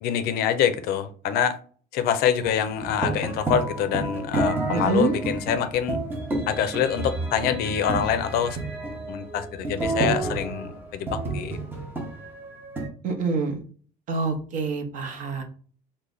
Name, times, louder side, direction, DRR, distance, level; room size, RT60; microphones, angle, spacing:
voice 1, 0.0-1.6 1.9-6.0 6.5-8.6 9.1-11.6, left 8 dB, 60° left, 0.4 m, -25 dB
sound 1, 2.4-12.9, right 2 dB, 10° right, 0.6 m, -30 dB
voice 2, 4.7-5.2 13.0-13.6 14.1-15.4, right 4 dB, 45° right, 0.8 m, -26 dB
3.2 x 2.1 x 3.8 m
cardioid pair, 170°, 18 cm